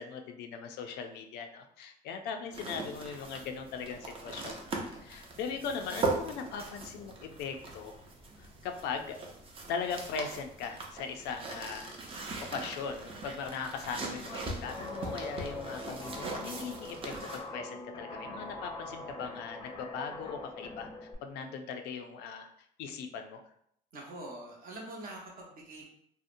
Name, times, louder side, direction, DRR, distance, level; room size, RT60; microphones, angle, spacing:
voice 1, 0.0-4.5 5.0-8.0 8.4-9.2 9.7-11.9 12.5-20.9 21.2-22.5 22.8-23.4, left 6 dB, 85° left, 5 dB, 0.4 m, -39 dB
sound 1, 2.5-17.4, right 3 dB, 35° right, 0.5 m, -40 dB
Guitar, 14.6-21.1, left 2 dB, 30° left, 0.5 m, -43 dB
voice 2, 23.9-25.8, right 1 dB, 55° right, -2 dB, 0.9 m, -44 dB
2.7 x 2.0 x 2.5 m, 0.71 s
cardioid pair, 110°, 17 cm